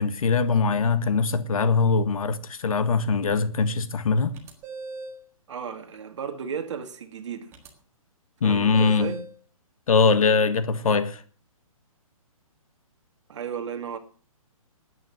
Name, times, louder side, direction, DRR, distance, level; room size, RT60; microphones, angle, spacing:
voice 1, 0.0-4.3 8.4-9.1 9.9-11.2, left 4 dB, 70° left, 1.6 m, -22 dB
sound 1, 4.3-5.2 7.5-7.7 8.7-9.3, right 3 dB, 15° right, 1.6 m, -38 dB
voice 2, 5.5-7.5 8.4-9.2 13.3-14.0, right 7 dB, 55° right, 2.3 m, -34 dB
13.0 x 9.3 x 7.6 m
hypercardioid pair, 170°, 18 cm